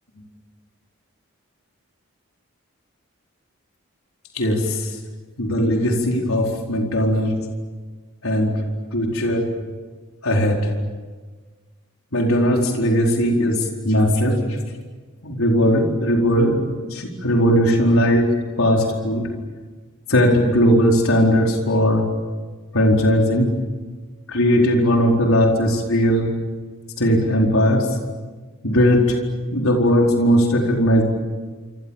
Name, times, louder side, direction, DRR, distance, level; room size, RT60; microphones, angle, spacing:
voice 1, 4.3-4.9 5.4-7.4 8.2-8.6 8.9-9.5 10.2-10.7 12.1-14.4 15.2-16.6 16.9-19.3 20.1-22.1 22.7-23.5 24.3-26.4 27.0-27.9 28.6-29.2 29.5-31.0, equal, 85° left, 1 dB, 4.6 m, -18 dB
27.5 x 26.5 x 7.3 m, 1.4 s
head